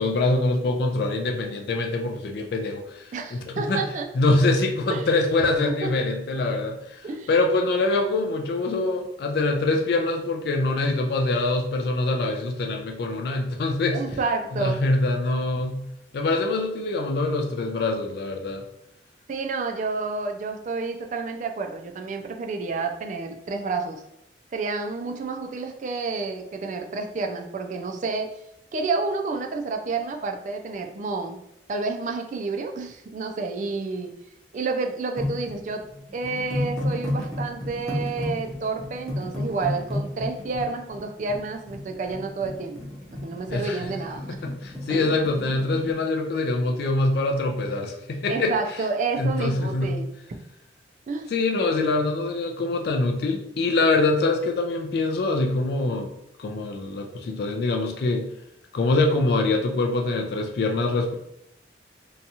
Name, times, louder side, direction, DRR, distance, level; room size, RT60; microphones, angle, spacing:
voice 1, 0.0-3.8 4.1-14.0 14.5-15.8 16.1-18.6 43.5-43.8 44.3-48.5 49.2-50.0 51.3-56.1 56.4-58.3 58.7-61.1, left 2 dB, 60° left, 3 dB, 0.3 m, -24 dB
voice 2, 3.1-4.1 4.9-5.1 5.8-5.9 7.0-7.3 13.9-14.8 19.3-24.0 24.5-28.3 28.7-31.4 31.7-34.1 34.5-35.8 36.1-42.8 43.2-44.4 44.9-45.1 48.3-50.1 51.1-51.3, right 4 dB, 45° right, 4 dB, 0.3 m, -29 dB
sound 1, 35.2-45.9, left 1 dB, 5° left, 0.6 m, -32 dB
2.7 x 2.3 x 2.7 m, 0.80 s
head